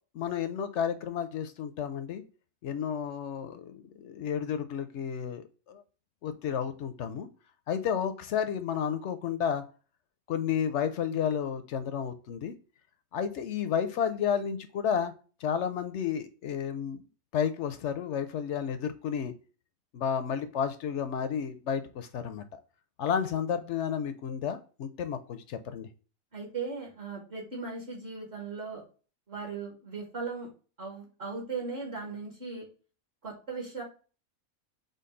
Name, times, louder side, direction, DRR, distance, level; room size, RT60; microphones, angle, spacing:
voice 1, 0.1-2.2 2.6-5.8 6.2-7.3 7.7-9.6 10.3-12.5 13.1-15.1 15.4-17.0 17.3-19.3 19.9-22.4 23.0-25.9, left 8 dB, 65° left, 10 dB, 0.7 m, -31 dB
voice 2, 26.3-28.8 29.3-30.5 30.8-32.7 33.2-33.8, right 4 dB, 50° right, -1 dB, 1.5 m, -38 dB
5.2 x 2.3 x 3.7 m, 0.36 s
omnidirectional pair, 1.5 m